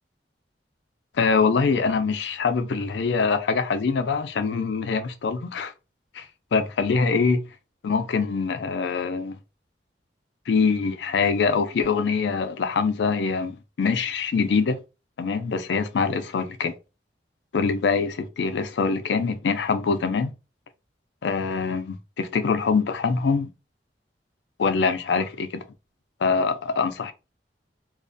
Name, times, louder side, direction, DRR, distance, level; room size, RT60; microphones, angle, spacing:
voice 1, 1.2-5.7 6.1-6.2 6.5-7.4 7.8-9.4 10.5-14.8 15.2-16.7 17.5-20.3 21.2-23.5 24.6-25.6 26.2-27.1, left 5 dB, 75° left, 0.4 m, -24 dB
2.4 x 2.2 x 2.5 m
head